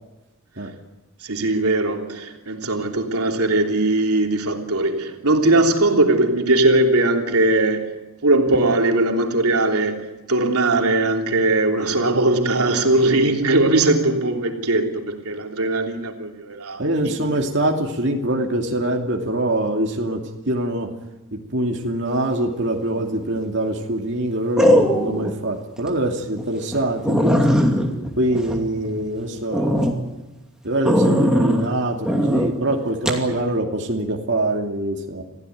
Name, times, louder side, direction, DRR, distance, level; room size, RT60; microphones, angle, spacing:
voice 1, 1.2-17.2 33.3-33.4, right 2 dB, 85° right, 2 dB, 3.2 m, -20 dB
voice 2, 16.8-20.9 21.3-27.5 28.2-29.8 30.6-35.2, right 1 dB, 50° right, 0 dB, 2.6 m, -24 dB
sound 1, 23.0-23.4 24.6-25.3 25.8-25.9 26.4-26.5 26.7-26.8 27.1-29.1 29.5-29.9 30.9-31.7 32.1-32.5 33.1-33.2, equal, 5° right, 2.6 m, -19 dB
27.5 x 16.0 x 9.4 m, 1.0 s
head